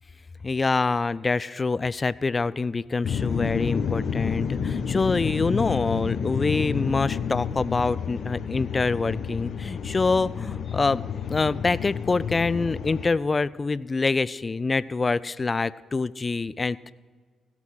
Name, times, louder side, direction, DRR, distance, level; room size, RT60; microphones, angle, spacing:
voice 1, 0.4-11.0 11.3-16.9, left 3 dB, 35° left, 19 dB, 0.4 m, -25 dB
sound 1, 3.0-13.1, left 7 dB, 60° left, 0.9 m, -30 dB
16.5 x 6.0 x 6.2 m, 1.5 s
hypercardioid pair, 45°, 0 cm